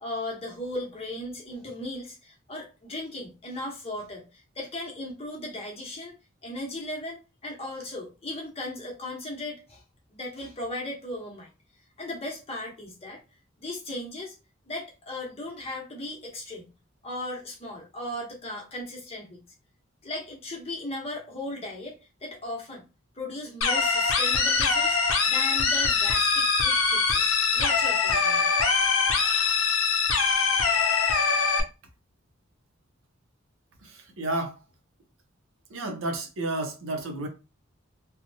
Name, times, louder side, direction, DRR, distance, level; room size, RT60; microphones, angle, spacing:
voice 1, 0.0-6.1 6.4-9.8 10.1-11.5 12.0-13.2 13.6-14.3 14.7-16.7 17.0-19.4 20.0-22.8 23.1-28.5, left 1 dB, 30° left, 0.8 m, -37 dB
sound 1, 23.6-31.6, left 5 dB, 90° left, 0.5 m, -23 dB
voice 2, 33.8-34.6 35.7-37.3, right 2 dB, 85° right, 0.6 m, -31 dB
2.8 x 2.1 x 2.6 m
head